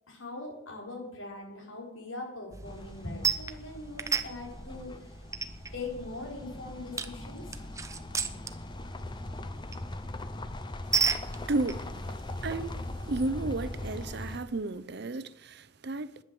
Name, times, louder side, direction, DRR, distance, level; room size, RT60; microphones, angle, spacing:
voice 1, 0.1-5.1 5.7-7.5, left 2 dB, 85° left, 4.6 m, -41 dB
sound 1, 2.5-13.3, right 5 dB, 15° right, 0.8 m, -36 dB
sound 2, 2.7-14.4, left 2 dB, 25° left, 0.7 m, -41 dB
voice 2, 11.3-11.9 12.4-12.8 13.1-16.2, right 2 dB, 55° right, 0.7 m, -33 dB
11.0 x 10.5 x 7.6 m
head